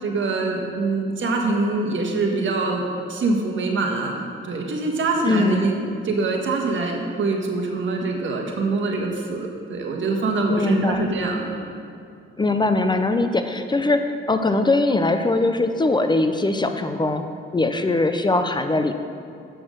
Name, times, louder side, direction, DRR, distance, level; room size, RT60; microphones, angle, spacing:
voice 1, 0.0-2.8 3.1-11.4, right 3 dB, 65° right, 1 dB, 1.4 m, -24 dB
voice 2, 5.2-5.7 10.5-11.1 12.4-17.2 17.5-18.9, left 2 dB, 20° left, 7 dB, 0.5 m, -21 dB
7.9 x 6.1 x 6.3 m, 2.5 s
cardioid pair, 85°, 21 cm